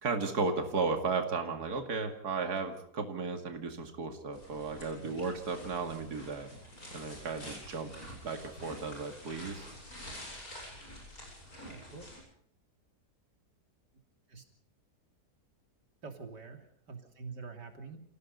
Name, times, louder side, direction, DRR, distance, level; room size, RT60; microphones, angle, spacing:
voice 1, 0.0-6.5 6.9-7.9 8.2-9.7, right 4 dB, 70° right, 5 dB, 2.8 m, -34 dB
sound 1, 4.3-12.2, equal, 60° left, 8.4 m, -48 dB
voice 2, 11.6-12.0 14.3-14.4 16.0-18.0, right 4 dB, 90° right, 5 dB, 3.5 m, -46 dB
29.0 x 17.0 x 5.4 m, 0.66 s
omnidirectional pair, 1.8 m